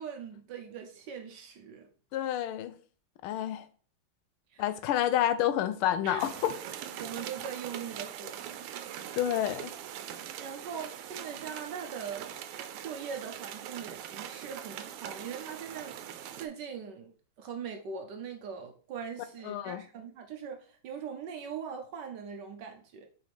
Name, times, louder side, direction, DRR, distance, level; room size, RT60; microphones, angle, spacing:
voice 1, 0.0-1.9 4.5-4.6 6.0-6.2 7.0-8.7 10.4-12.3 12.8-15.9 16.4-17.1 17.4-23.1, right 6 dB, 65° right, 1.2 m, -41 dB
voice 2, 2.1-2.8 3.2-3.7 4.6-6.5 9.2-9.7 19.4-19.8, left 11 dB, 85° left, 1.5 m, -29 dB
sound 1, 6.2-16.5, right 10 dB, 90° right, 1.5 m, -42 dB
5.7 x 5.0 x 3.4 m
omnidirectional pair, 2.3 m